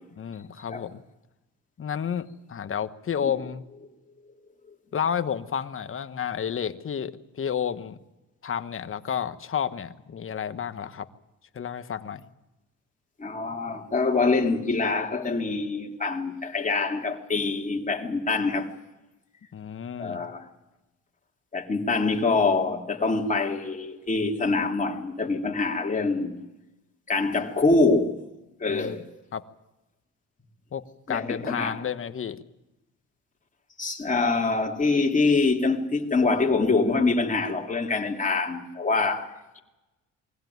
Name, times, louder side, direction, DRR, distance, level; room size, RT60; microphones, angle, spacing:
voice 1, 0.2-1.0 1.8-3.6 4.9-8.0 8.4-11.1 11.5-12.3 19.5-20.2 28.7-29.0 29.3-29.4 30.7-32.4, left 8 dB, 45° left, 1.3 m, -31 dB
voice 2, 13.2-18.7 20.0-20.4 21.5-26.4 27.1-28.2 28.6-29.0 31.1-31.8 33.8-39.6, left 3 dB, 25° left, 3.1 m, -25 dB
22.5 x 16.5 x 9.5 m
cardioid pair, 90°, 30 cm